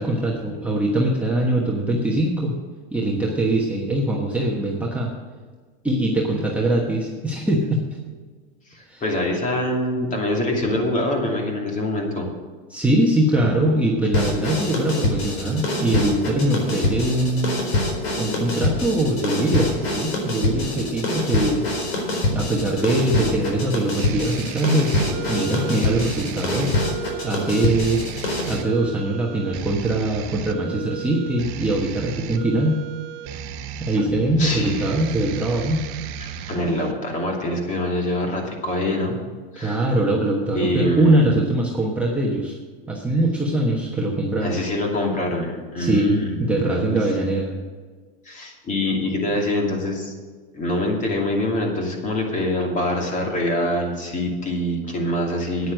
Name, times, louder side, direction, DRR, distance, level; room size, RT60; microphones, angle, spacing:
voice 1, 0.0-2.5 2.9-5.1 5.8-7.8 8.9-9.0 12.7-17.6 18.2-21.7 22.3-26.8 27.2-28.0 28.5-32.8 33.8-35.8 39.6-42.6 42.9-44.6 45.8-47.5, right 1 dB, 5° right, -3 dB, 1.2 m, -22 dB
voice 2, 8.7-12.3 13.4-13.5 34.4-34.8 36.2-39.2 39.5-39.8 40.5-41.4 44.4-47.0 48.2-50.1 50.5-55.7, left 1 dB, 25° left, 1 dB, 2.6 m, -25 dB
sound 1, 14.1-28.6, left 2 dB, 80° left, 4.4 m, -25 dB
sound 2, 22.4-36.9, right 9 dB, 45° right, 0.9 m, -35 dB
9.5 x 9.4 x 6.4 m, 1.5 s
supercardioid pair, 140°, 30 cm